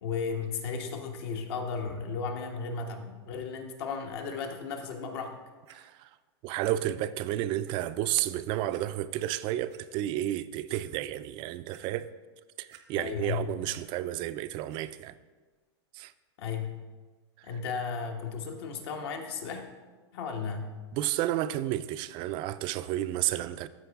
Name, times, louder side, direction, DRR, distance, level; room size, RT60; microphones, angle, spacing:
voice 1, 0.0-5.3 12.9-13.4 16.4-16.7 17.4-19.6 20.1-20.7, left 5 dB, 65° left, 1.2 m, -34 dB
Clock, 5.6-5.7 6.7-6.8 7.2-7.3 7.7-7.8 8.7-8.8 9.5-9.8 10.3-10.4 10.7-10.8 11.3-11.8 12.7-13.2 13.5-13.8 14.7-14.8 15.5-15.6, right 10 dB, 80° right, 0.9 m, -54 dB
voice 2, 5.7-6.1 6.4-12.1 12.6-15.1 15.9-16.1 20.9-23.7, right 13 dB, 35° right, 0.3 m, -31 dB
13.5 x 4.6 x 3.5 m
supercardioid pair, 140°, 14 cm